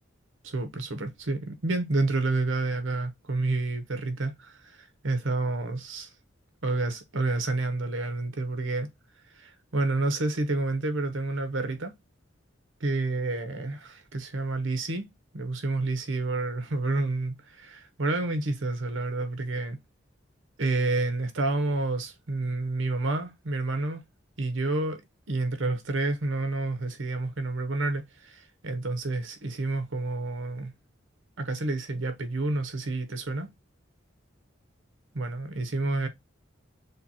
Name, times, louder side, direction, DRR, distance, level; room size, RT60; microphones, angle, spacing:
voice 1, 0.4-6.1 6.6-8.9 9.3-11.9 12.8-15.0 15.3-19.8 20.6-24.0 24.4-30.7 31.4-33.5 35.1-36.1, right 2 dB, 80° right, 0.9 m, -29 dB
6.7 x 2.3 x 2.8 m
head